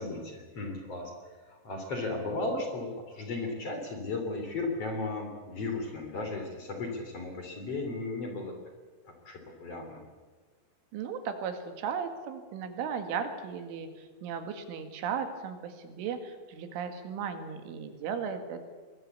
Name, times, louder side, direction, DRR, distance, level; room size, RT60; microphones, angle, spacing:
voice 1, 0.0-8.6 9.0-10.1, left 2 dB, 35° left, 4 dB, 3.8 m, -35 dB
voice 2, 10.9-18.7, right 6 dB, 80° right, 7 dB, 4.4 m, -36 dB
24.0 x 20.5 x 8.3 m, 1.4 s
omnidirectional pair, 5.5 m